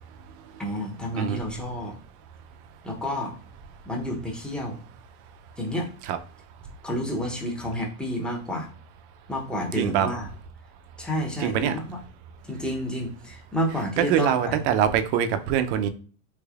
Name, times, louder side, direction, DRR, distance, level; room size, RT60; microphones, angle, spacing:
voice 1, 0.6-1.9 2.8-3.3 3.9-4.8 5.6-5.9 6.8-8.7 9.3-10.3 11.0-12.0 12.4-14.6, equal, ahead, 0.7 m, -30 dB
voice 2, 9.7-10.1 11.4-11.8 14.0-15.9, right 9 dB, 60° right, 0.6 m, -23 dB
3.3 x 3.3 x 2.3 m
supercardioid pair, 125°, 40 cm